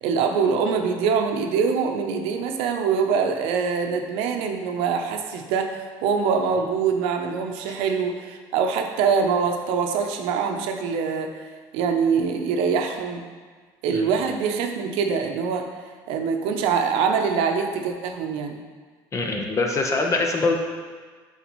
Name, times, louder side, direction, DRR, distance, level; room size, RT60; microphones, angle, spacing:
voice 1, 0.0-11.4 11.7-13.2 13.8-15.7 16.1-18.6, right 6 dB, 80° right, 4 dB, 0.6 m, -24 dB
voice 2, 19.1-20.6, left 3 dB, 30° left, 2 dB, 0.9 m, -23 dB
8.0 x 4.0 x 3.1 m, 1.5 s
supercardioid pair, 100°, 9 cm